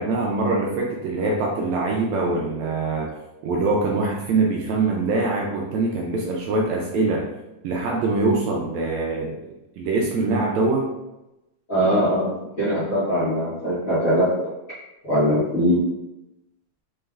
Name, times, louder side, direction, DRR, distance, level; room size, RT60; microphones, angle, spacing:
voice 1, 0.0-3.1 3.4-7.3 7.6-9.4 9.8-10.9, right 3 dB, 80° right, -1 dB, 1.7 m, -23 dB
voice 2, 11.7-12.3 12.6-14.3 15.0-15.8, equal, 40° left, -13 dB, 1.2 m, -21 dB
5.2 x 3.3 x 2.4 m, 0.94 s
omnidirectional pair, 3.5 m